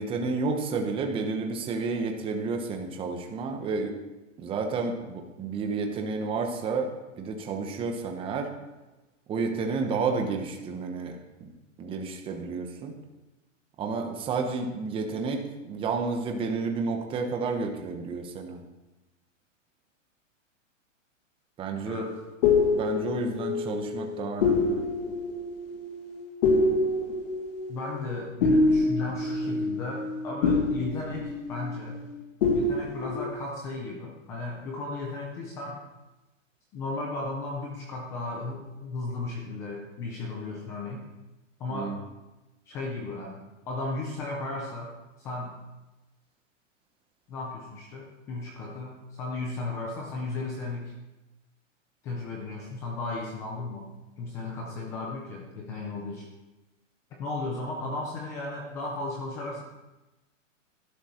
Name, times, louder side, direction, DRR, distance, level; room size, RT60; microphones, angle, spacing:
voice 1, 0.0-3.9 4.4-6.9 7.2-8.5 9.3-11.1 11.8-12.9 13.8-18.6 21.6-22.0 22.7-24.8 41.7-42.0, right 4 dB, 15° right, 4 dB, 1.0 m, -31 dB
sound 1, 22.0-32.1 32.4-33.3, left 3 dB, 45° left, 1.9 m, -26 dB
voice 2, 27.7-32.0 32.5-35.8 36.7-41.1 41.6-41.9 42.7-44.9 45.2-45.6 47.3-50.9 52.0-56.3 57.2-59.6, left 2 dB, 10° left, -1 dB, 0.4 m, -35 dB
11.5 x 11.5 x 4.4 m, 1.1 s
hypercardioid pair, 155°, 39 cm